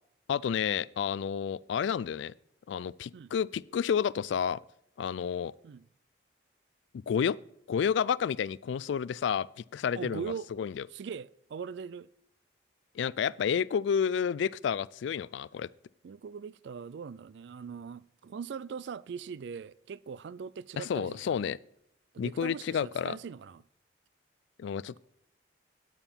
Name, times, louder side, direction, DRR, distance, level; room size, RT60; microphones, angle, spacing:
voice 1, 0.3-2.3 2.7-4.6 5.0-5.5 6.9-7.4 7.7-10.3 10.6-10.8 13.0-15.7 20.8-21.6 22.2-23.2 24.6-25.0, left 7 dB, 70° left, 0.3 m, -30 dB
voice 2, 9.9-10.5 10.9-12.1 16.0-21.4 22.1-23.6, right 6 dB, 65° right, 0.3 m, -41 dB
9.0 x 8.9 x 4.4 m
head